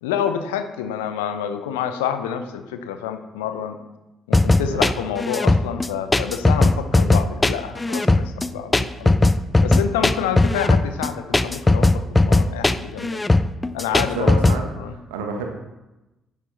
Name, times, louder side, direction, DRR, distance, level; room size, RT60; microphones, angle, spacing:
voice 1, 0.0-3.8 4.3-9.2 9.6-13.2 13.7-14.4 14.8-14.9, left 9 dB, 75° left, 9 dB, 0.6 m, -28 dB
sound 1, 4.3-14.6, left 2 dB, 20° left, 0.5 m, -18 dB
voice 2, 13.9-14.6 14.9-15.5, right 5 dB, 70° right, 3 dB, 1.3 m, -30 dB
10.5 x 7.2 x 4.2 m, 1.0 s
figure-of-eight pair, 45°, 0 cm